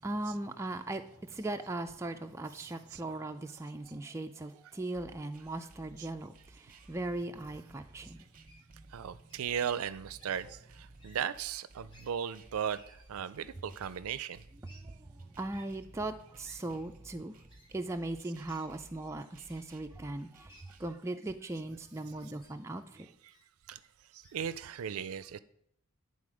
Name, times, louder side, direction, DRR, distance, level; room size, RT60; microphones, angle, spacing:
voice 1, 0.0-9.4 10.4-10.5 14.7-17.4 17.7-23.1, right 2 dB, 15° right, 0.3 m, -39 dB
voice 2, 2.6-3.0 6.0-6.1 8.9-14.4 23.2-23.3 23.7-23.8 24.1-25.4, right 8 dB, 80° right, 0.4 m, -37 dB
sound 1, 4.9-21.0, right 2 dB, 40° right, 0.7 m, -57 dB
Wild animals, 8.5-8.7 9.3-9.5 10.2-10.3 11.0-11.2 11.9-12.1 12.7-13.1 13.8-13.9 14.6-14.8 15.5-15.6 16.4-16.6 17.5-17.7 18.5-18.7 19.5-19.7 20.5-20.6 21.4-21.6 22.4-22.5 23.3-23.4 24.2-24.4, equal, 20° left, 1.0 m, -59 dB
10.0 x 4.0 x 4.9 m
head